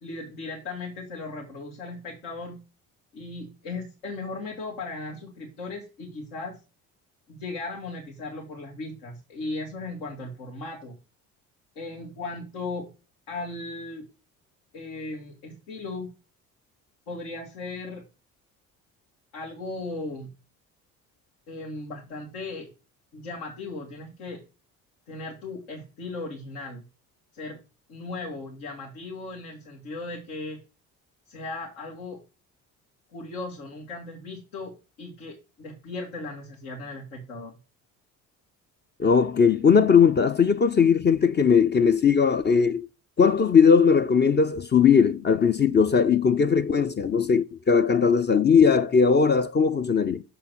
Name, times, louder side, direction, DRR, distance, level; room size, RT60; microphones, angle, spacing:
voice 1, 0.0-2.6 3.1-6.6 7.3-11.0 11.8-12.9 13.3-14.1 14.7-16.1 17.1-18.0 19.3-20.3 21.5-22.7 23.1-24.4 25.1-26.8 27.3-27.6 27.9-30.6 31.3-32.2 33.1-37.5, left 3 dB, 75° left, 2.0 m, -37 dB
voice 2, 39.0-42.9 43.2-50.2, left 6 dB, 25° left, 0.5 m, -19 dB
6.8 x 3.7 x 6.0 m
hypercardioid pair, 55°, 42 cm